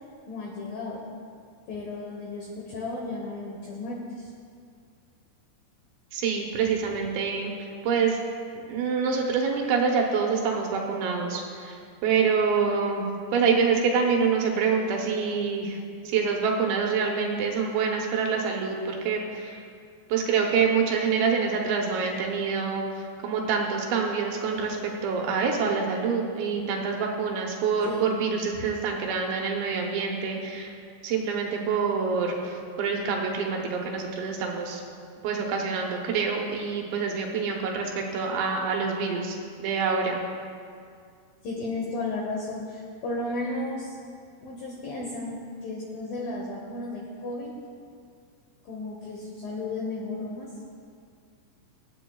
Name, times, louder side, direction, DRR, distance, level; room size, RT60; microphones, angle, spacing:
voice 1, 0.3-1.1 1.7-4.3 27.8-28.1 41.4-44.0 44.4-47.6 48.6-50.5, left 2 dB, 75° left, -3 dB, 2.2 m, -34 dB
voice 2, 6.1-8.2 8.5-11.8 12.0-13.1 13.3-15.8 16.1-19.6 20.1-22.8 23.2-30.7 31.0-34.8 35.2-40.2, right 5 dB, 75° right, 0 dB, 3.0 m, -26 dB
24.0 x 8.6 x 2.3 m, 2.3 s
omnidirectional pair, 5.6 m